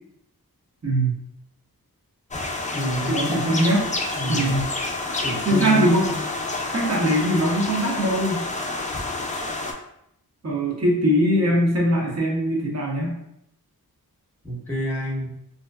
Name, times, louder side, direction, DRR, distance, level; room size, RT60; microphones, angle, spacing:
voice 1, 0.8-1.1 3.1-3.8 4.3-4.7 5.4-6.1 6.7-8.4 10.4-13.1, equal, 45° right, -4 dB, 0.8 m, -21 dB
sound 1, 2.3-9.7, left 2 dB, 20° left, 0.3 m, -29 dB
voice 2, 2.7-3.7 4.2-4.7 5.2-5.9 14.4-15.3, right 1 dB, 5° left, -5 dB, 0.8 m, -28 dB
2.6 x 2.1 x 2.3 m, 0.77 s
wide cardioid pair, 50°, 38 cm